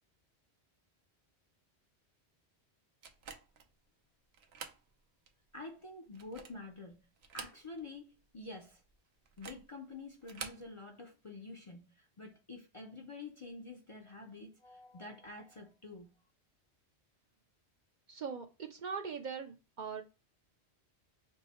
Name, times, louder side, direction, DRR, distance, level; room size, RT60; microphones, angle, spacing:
sound 1, 3.0-3.7 4.3-4.8 5.3-5.4 6.0-6.7 7.2-8.0 8.2-8.3 9.3-9.7 10.2-10.7, right 6 dB, 75° right, 0.9 m, -48 dB
voice 1, 5.5-7.0 7.3-8.8 9.4-16.1, left 3 dB, 40° left, 0.5 m, -48 dB
voice 2, 18.1-20.0, right 6 dB, 55° right, 0.6 m, -41 dB
5.4 x 2.1 x 4.1 m
omnidirectional pair, 1.1 m